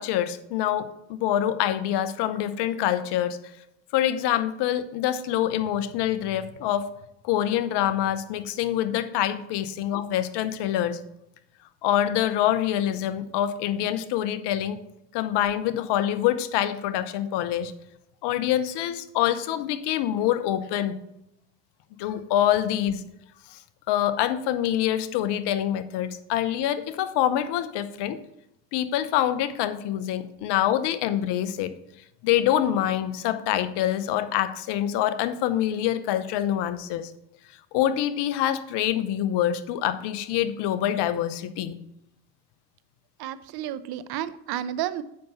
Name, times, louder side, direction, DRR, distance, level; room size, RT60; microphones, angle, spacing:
voice 1, 0.0-3.4 3.9-6.9 7.2-11.0 11.8-14.8 15.1-17.7 18.2-21.0 22.0-23.0 23.5-23.6 23.9-28.2 28.7-31.7 32.2-37.1 37.7-41.8, left 11 dB, 60° left, 12 dB, 0.9 m, -25 dB
voice 2, 43.2-45.0, right 11 dB, 55° right, 14 dB, 0.7 m, -31 dB
7.7 x 5.7 x 5.5 m, 0.81 s
hypercardioid pair, 75°, 46 cm